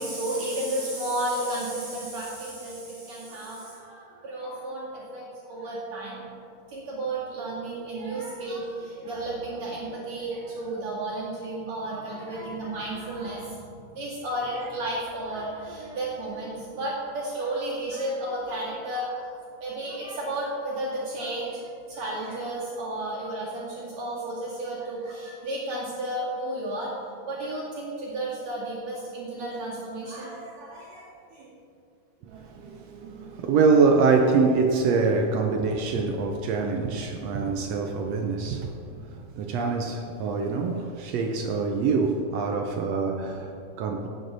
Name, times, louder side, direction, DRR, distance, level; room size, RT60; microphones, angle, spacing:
voice 1, 0.0-6.2 6.7-13.6 13.9-19.3 19.6-26.9 27.2-31.5, right 1 dB, 55° right, -7 dB, 3.2 m, -33 dB
voice 2, 32.2-44.1, right 4 dB, 80° right, 4 dB, 1.5 m, -25 dB
17.5 x 8.3 x 4.0 m, 2.5 s
omnidirectional pair, 3.8 m